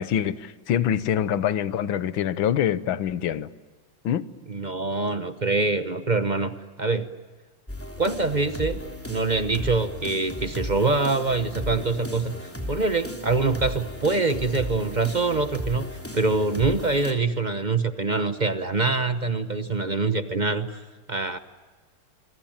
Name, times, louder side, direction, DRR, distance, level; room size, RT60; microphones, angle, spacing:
voice 1, 0.0-3.5 4.0-4.3, left 9 dB, 70° left, 1.8 m, -25 dB
voice 2, 4.5-7.1 8.0-8.8 9.1-15.9 16.1-20.8 21.1-21.4, right 3 dB, 35° right, 0.7 m, -25 dB
sound 1, 7.7-17.1, left 1 dB, 5° left, 3.2 m, -36 dB
27.5 x 24.0 x 8.9 m
omnidirectional pair, 2.3 m